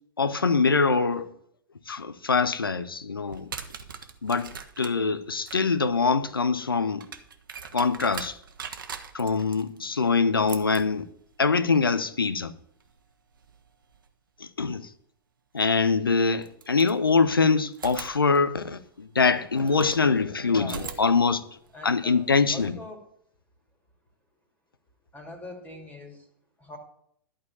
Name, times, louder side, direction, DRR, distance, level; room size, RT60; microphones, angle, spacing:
voice 1, 0.2-1.3 1.9-3.5 4.2-7.1 7.7-8.4 9.1-11.1 11.4-12.5 14.6-14.9 15.5-21.4 21.8-22.8, left 4 dB, 75° left, 0.8 m, -24 dB
sound 1, 3.3-14.1 15.6-15.7 16.4-17.4 17.7-20.0 20.6-22.7, right 6 dB, 65° right, 1.1 m, -43 dB
voice 2, 20.4-21.3 21.7-23.1 25.1-26.2 26.6-26.8, left 2 dB, 15° left, 2.4 m, -42 dB
11.5 x 5.0 x 8.4 m
figure-of-eight pair, 95°, 12 cm